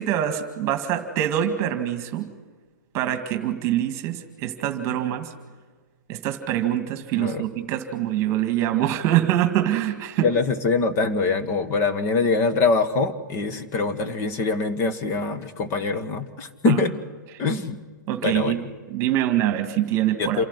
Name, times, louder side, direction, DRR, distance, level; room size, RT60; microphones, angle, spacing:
voice 1, 0.0-2.3 2.9-5.3 6.1-10.3 16.6-16.8 18.1-18.6 18.9-20.4, right 12 dB, 30° right, 8 dB, 1.9 m, -24 dB
voice 2, 10.2-16.9 17.4-17.8 18.2-18.5 20.2-20.4, left 4 dB, 25° left, 10 dB, 1.4 m, -23 dB
27.5 x 11.5 x 9.7 m, 1.4 s
hypercardioid pair, 140°, 10 cm